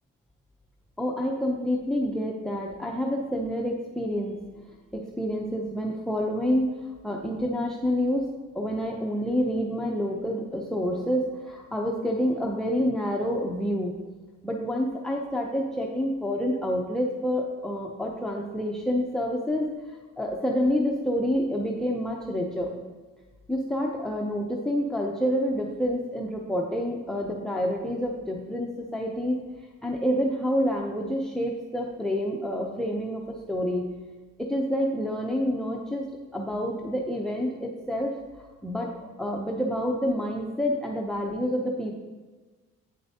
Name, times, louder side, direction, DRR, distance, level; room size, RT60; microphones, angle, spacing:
voice 1, 1.0-4.4 4.9-14.0 14.4-19.7 20.2-22.8 23.5-29.4 29.8-33.2 33.5-33.9 34.4-41.9, equal, ahead, 0 dB, 0.6 m, -28 dB
8.9 x 6.7 x 2.8 m, 1.3 s
cardioid pair, 90°, 30 cm